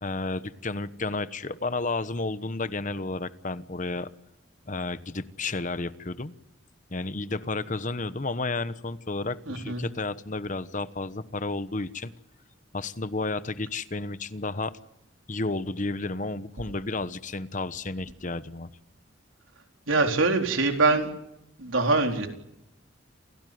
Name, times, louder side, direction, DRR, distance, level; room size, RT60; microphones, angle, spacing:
voice 1, 0.0-4.1 4.7-6.3 6.9-12.1 12.7-14.8 15.3-18.7, left 3 dB, 40° left, 13 dB, 1.1 m, -32 dB
voice 2, 9.5-9.8 19.9-21.1 21.6-22.3, right 3 dB, 80° right, 4 dB, 4.3 m, -23 dB
28.5 x 17.5 x 9.5 m, 0.83 s
head